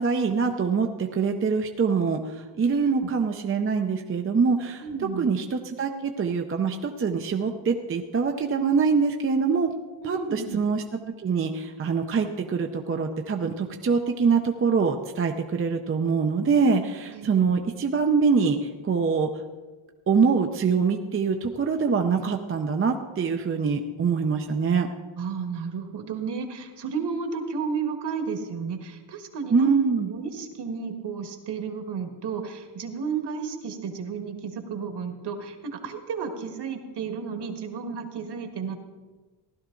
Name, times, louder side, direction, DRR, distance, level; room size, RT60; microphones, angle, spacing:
voice 1, 0.0-4.8 5.2-9.7 10.1-10.8 11.2-19.3 20.1-24.9 29.5-30.1, right 5 dB, 25° right, 4 dB, 0.6 m, -24 dB
voice 2, 4.8-5.3 10.0-10.6 17.1-17.5 25.2-29.7 30.0-38.7, right 5 dB, 55° right, 5 dB, 1.7 m, -32 dB
15.5 x 12.0 x 3.8 m, 1.3 s
cardioid pair, 150°, 48 cm